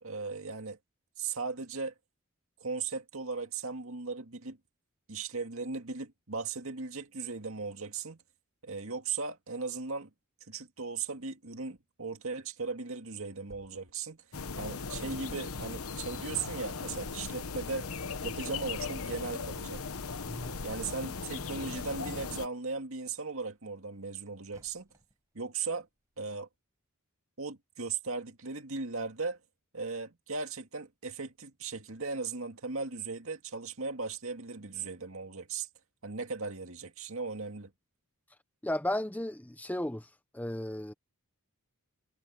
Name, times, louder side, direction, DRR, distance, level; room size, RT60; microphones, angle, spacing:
voice 1, 0.0-0.8 1.2-1.9 2.6-4.6 5.1-8.2 8.6-10.1 10.5-14.2 14.6-17.9 18.2-19.8 20.6-24.9 25.3-25.9 26.2-26.5 27.4-29.4 29.7-35.7 36.0-37.7, right 4 dB, 65° right, 2.2 m, -37 dB
sound 1, 13.5-15.0 15.4-15.5 15.7-22.7 23.1-25.2 25.7-25.8 26.2-26.3, equal, 15° right, 7.1 m, -60 dB
sound 2, 14.3-22.5, left 4 dB, 70° left, 1.1 m, -38 dB
voice 2, 20.2-20.6 38.6-40.1 40.3-40.9, left 1 dB, 5° left, 0.7 m, -34 dB
head